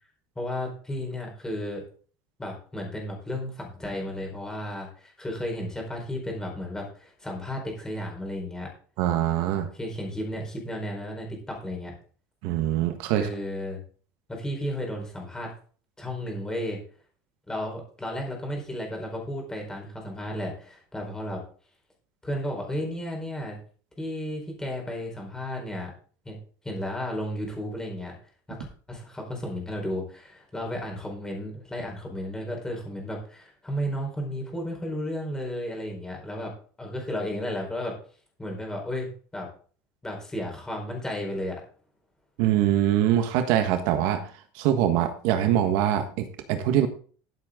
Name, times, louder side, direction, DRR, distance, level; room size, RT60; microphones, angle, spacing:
voice 1, 0.4-1.8 2.4-8.7 9.7-11.9 13.1-13.8 14.3-15.5 16.0-16.8 17.5-21.4 22.2-23.6 24.0-25.9 26.2-26.4 26.6-28.1 28.9-36.5 36.8-37.9 38.4-39.5 40.0-41.6, equal, 10° left, 0 dB, 4.4 m, -33 dB
voice 2, 9.0-9.7 12.4-13.3 42.4-46.9, right 11 dB, 70° right, 8 dB, 1.4 m, -24 dB
13.0 x 8.0 x 3.8 m, 0.42 s
cardioid pair, 160°, 8 cm